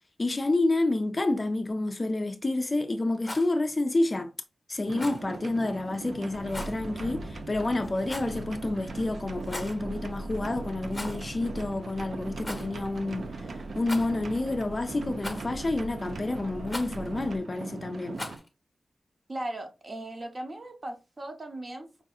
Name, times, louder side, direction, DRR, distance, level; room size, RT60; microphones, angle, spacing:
voice 1, 0.2-4.3 4.7-18.2, left 2 dB, 30° left, 0.3 m, -29 dB
Rattle, 3.1-3.5 4.9-5.2 6.5-6.8 8.0-8.4 9.4-9.8 10.9-11.3 11.6-11.7 12.4-12.7 13.8-14.3 15.2-15.6 16.7-17.0 18.1-18.5, left 1 dB, 15° left, 0.8 m, -39 dB
sound 1, 4.9-18.4, right 4 dB, 70° right, 0.4 m, -40 dB
sound 2, 6.3-17.4, right 1 dB, 90° right, 0.8 m, -42 dB
voice 2, 19.3-22.0, right 1 dB, 35° right, 0.8 m, -38 dB
4.7 x 2.6 x 2.3 m
wide cardioid pair, 120°, 0 cm